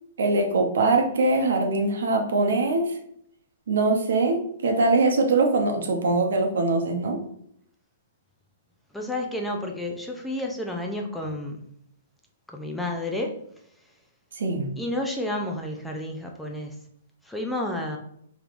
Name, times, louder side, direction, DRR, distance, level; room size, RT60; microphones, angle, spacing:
voice 1, 0.2-2.9 3.7-7.2 14.4-14.7, right 3 dB, 80° right, 3 dB, 0.8 m, -22 dB
voice 2, 8.9-11.6 12.5-13.4 14.8-16.8 17.2-18.0, left 1 dB, 5° left, 1 dB, 0.4 m, -30 dB
3.3 x 3.0 x 2.5 m, 0.69 s
hypercardioid pair, 150°, 0 cm